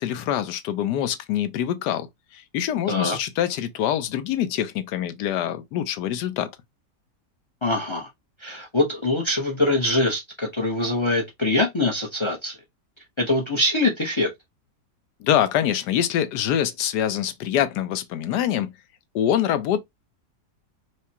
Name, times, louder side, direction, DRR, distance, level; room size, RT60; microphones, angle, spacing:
voice 1, 0.0-2.1 2.3-6.5 15.2-18.7 19.1-19.8, left 10 dB, 80° left, 1.2 m, -25 dB
voice 2, 2.9-3.2 7.6-8.1 8.4-12.5 13.2-14.3, left 2 dB, 45° left, 0.3 m, -23 dB
4.7 x 2.1 x 2.8 m
omnidirectional pair, 1.8 m